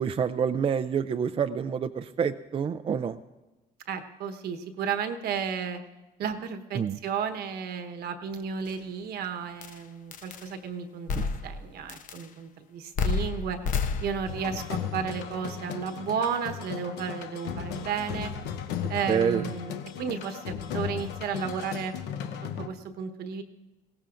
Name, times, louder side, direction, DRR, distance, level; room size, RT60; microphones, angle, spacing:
voice 1, 0.0-3.2 6.7-7.0 11.1-11.3 19.1-19.4, right 7 dB, 35° right, 10 dB, 0.4 m, -27 dB
voice 2, 3.9-5.8 6.2-13.6 14.0-18.3 18.9-21.9 22.6-23.4, right 7 dB, 70° right, 7 dB, 1.2 m, -33 dB
sound 1, 8.7-8.8 9.6-9.8 10.1-10.5 11.1-11.6 11.9-12.3 13.0-14.4, left 5 dB, 50° left, 0.8 m, -30 dB
sound 2, 14.3-22.7, left 8 dB, 85° left, 0.9 m, -36 dB
20.5 x 17.0 x 2.6 m, 1.1 s
cardioid pair, 110°, 17 cm